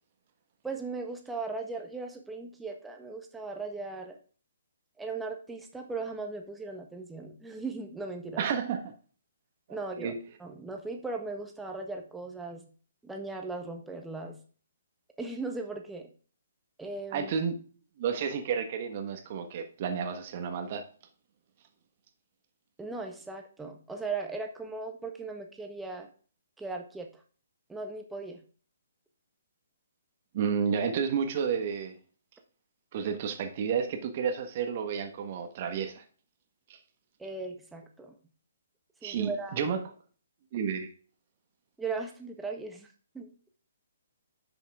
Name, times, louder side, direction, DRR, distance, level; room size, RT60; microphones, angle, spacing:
voice 1, 0.6-4.2 5.0-8.4 9.7-10.1 10.4-12.6 13.0-14.4 15.2-16.1 16.8-17.3 22.8-26.1 26.6-27.1 27.7-28.4 37.2-38.2 39.0-39.7 41.8-42.9 43.1-43.3, right 3 dB, 5° right, 3 dB, 1.5 m, -38 dB
voice 2, 8.4-8.9 9.7-10.1 17.1-17.6 18.0-20.8 30.3-32.0 32.9-36.0 36.7-36.8 39.0-39.8 40.5-40.9, right 7 dB, 40° right, 6 dB, 1.4 m, -31 dB
10.5 x 6.2 x 3.6 m, 0.41 s
figure-of-eight pair, 130°, 0 cm